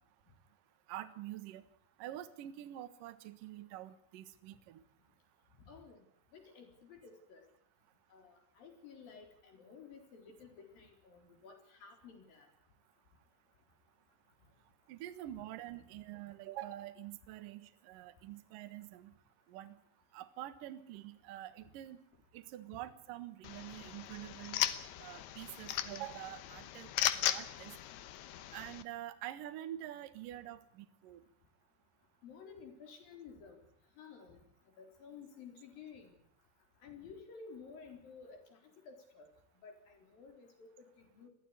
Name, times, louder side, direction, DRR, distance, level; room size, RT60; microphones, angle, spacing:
voice 1, 0.9-1.6 2.0-4.8 14.9-19.1 19.5-19.8 20.1-22.0 22.3-24.6 25.0-26.9 27.3-27.8 28.5-31.2, right 13 dB, 65° right, 10 dB, 2.3 m, -46 dB
voice 2, 5.6-6.0 6.3-7.4 8.1-12.5 32.2-33.6 34.0-34.4 34.8-36.1 36.8-38.6 38.9-39.3 39.6-41.3, left 5 dB, 45° left, 4 dB, 5.5 m, -53 dB
sound 1, 23.4-28.8, left 12 dB, 70° left, 2.5 m, -37 dB
22.0 x 15.5 x 9.8 m, 0.65 s
omnidirectional pair, 5.8 m